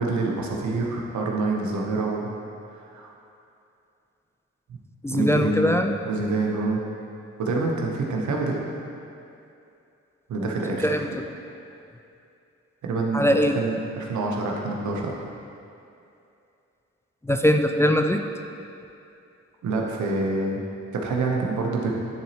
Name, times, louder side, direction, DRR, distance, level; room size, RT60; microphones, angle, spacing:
voice 1, 0.0-2.3 2.9-3.1 5.1-6.8 7.4-8.7 10.3-11.1 12.8-13.3 13.5-15.1 19.6-20.6 20.9-21.9, right 3 dB, 75° right, 0 dB, 0.9 m, -26 dB
voice 2, 5.0-6.0 10.8-11.2 13.1-13.6 17.2-18.3, equal, 10° left, 5 dB, 0.3 m, -21 dB
9.4 x 4.2 x 2.9 m, 2.6 s
supercardioid pair, 45°, 29 cm